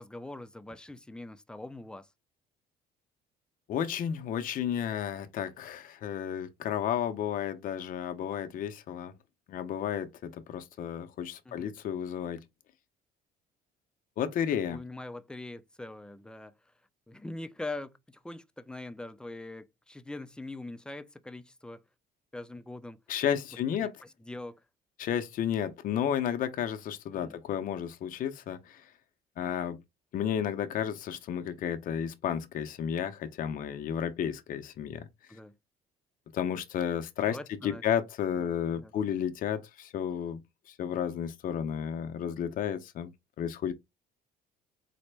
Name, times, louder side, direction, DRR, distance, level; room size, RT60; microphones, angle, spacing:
voice 1, 0.0-2.1 11.5-11.7 14.7-16.5 17.1-21.8 22.3-23.0 23.8-24.6 27.1-27.4 35.3-35.5 37.3-37.8 38.3-38.9, left 2 dB, 5° left, 0.3 m, -43 dB
voice 2, 3.7-9.1 9.5-12.4 14.2-14.8 23.1-23.9 25.0-28.8 29.4-29.8 30.1-35.1 36.3-37.4 37.6-40.4 40.7-43.1 43.4-43.7, left 9 dB, 55° left, 0.6 m, -32 dB
4.1 x 2.1 x 3.2 m
cardioid pair, 110°, 17 cm